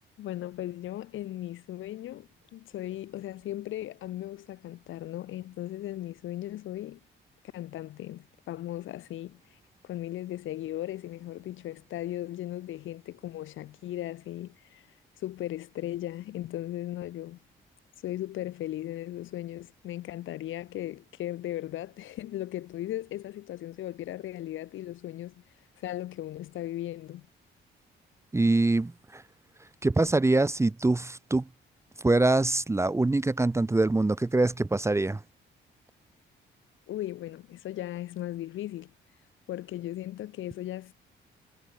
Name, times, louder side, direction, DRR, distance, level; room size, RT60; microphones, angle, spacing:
voice 1, 0.2-7.0 7.5-9.6 9.8-14.8 15.2-17.4 18.0-25.4 25.8-27.3 36.9-38.9 39.5-40.9, left 13 dB, 80° left, 2.0 m, -37 dB
voice 2, 28.3-29.2 29.8-31.5 32.0-35.2, right 2 dB, 15° right, 0.9 m, -24 dB
cardioid pair, 90°, 20 cm